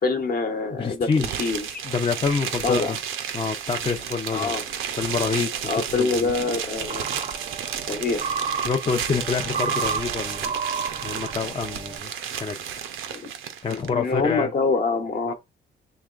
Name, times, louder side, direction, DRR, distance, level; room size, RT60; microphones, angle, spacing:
voice 1, 0.0-1.1 1.4-1.8 2.6-2.9 4.3-4.6 5.6-7.1 7.9-8.2 13.1-13.3 13.7-15.3, left 4 dB, 50° left, 1.0 m, -25 dB
voice 2, 0.7-1.4 1.8-3.0 3.3-4.5 5.0-5.5 5.9-6.3 8.6-10.5 11.0-12.1 12.4-12.6 13.6-14.5 15.3-15.4, left 5 dB, 25° left, 0.5 m, -27 dB
sound 1, 1.1-13.9, right 8 dB, 85° right, 0.6 m, -32 dB
sound 2, 6.7-12.0, right 5 dB, 35° right, 0.5 m, -31 dB
4.7 x 3.0 x 2.4 m
cardioid pair, 90°, 20 cm